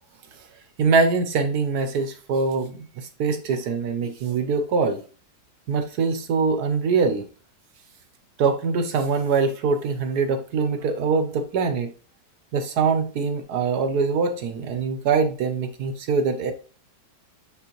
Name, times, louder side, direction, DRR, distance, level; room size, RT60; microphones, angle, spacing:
voice 1, 0.8-5.0 5.7-7.3 8.4-11.9 12.5-16.5, right 5 dB, 65° right, 8 dB, 1.1 m, -23 dB
8.7 x 3.8 x 3.0 m, 0.38 s
omnidirectional pair, 1.9 m